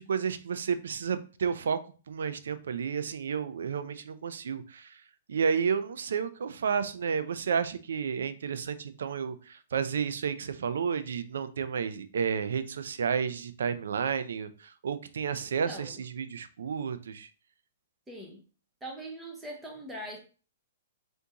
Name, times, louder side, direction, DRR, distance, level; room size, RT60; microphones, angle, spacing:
voice 1, 0.0-1.8 2.1-5.0 5.3-17.3, right 6 dB, 85° right, 12 dB, 0.4 m, -31 dB
voice 2, 15.6-16.0 18.1-18.4 18.8-20.2, right 1 dB, 10° right, 0 dB, 0.7 m, -41 dB
3.5 x 2.6 x 2.8 m, 0.37 s
hypercardioid pair, 155°, 0 cm